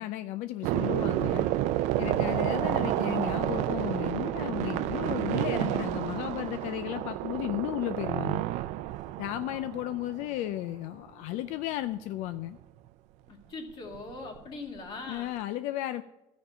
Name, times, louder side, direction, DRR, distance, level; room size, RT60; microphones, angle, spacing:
voice 1, 0.0-1.5 2.0-8.5 9.2-12.6 15.1-16.0, left 14 dB, 80° left, 11 dB, 0.4 m, -34 dB
sound 1, 0.6-10.6 12.3-12.4 12.6-12.7 13.9-14.5, right 14 dB, 70° right, 0.4 m, -30 dB
voice 2, 9.5-9.9 13.3-15.3, left 3 dB, 40° left, 3 dB, 1.8 m, -42 dB
13.5 x 5.3 x 7.2 m, 0.96 s
cardioid pair, 175°, 12 cm